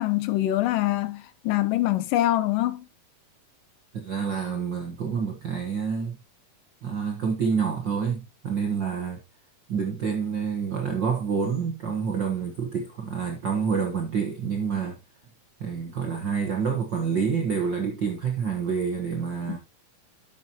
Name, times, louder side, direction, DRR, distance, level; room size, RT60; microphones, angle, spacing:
voice 1, 0.0-2.9, left 15 dB, 80° left, 2.3 m, -24 dB
voice 2, 3.9-6.2 6.8-9.2 9.7-15.0 15.6-19.6, right 6 dB, 60° right, 1.1 m, -28 dB
11.5 x 7.1 x 2.9 m
omnidirectional pair, 4.0 m